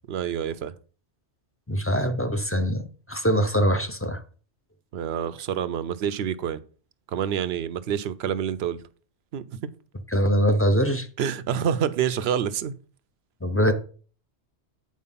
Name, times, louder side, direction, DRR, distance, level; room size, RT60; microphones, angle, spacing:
voice 1, 0.1-0.7 4.9-6.6 7.1-8.8 9.3-9.7 11.2-12.7, right 8 dB, 70° right, 0.8 m, -27 dB
voice 2, 1.7-2.8 3.1-4.2 10.1-11.1 13.4-13.7, equal, 15° left, 0.5 m, -22 dB
8.5 x 4.6 x 5.6 m
omnidirectional pair, 1.2 m